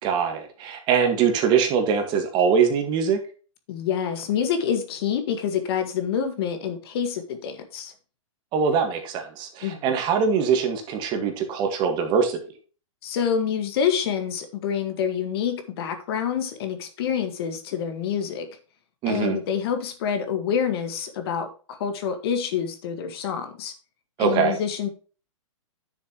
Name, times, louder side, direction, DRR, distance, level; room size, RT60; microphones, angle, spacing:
voice 1, 0.0-3.2 8.5-12.4 19.0-19.4 24.2-24.6, right 6 dB, 25° right, 5 dB, 1.7 m, -22 dB
voice 2, 3.7-7.9 9.6-9.8 13.0-18.5 19.1-23.7 24.2-24.9, left 8 dB, 45° left, 8 dB, 1.8 m, -27 dB
10.0 x 7.1 x 3.0 m, 0.36 s
hypercardioid pair, 155°, 17 cm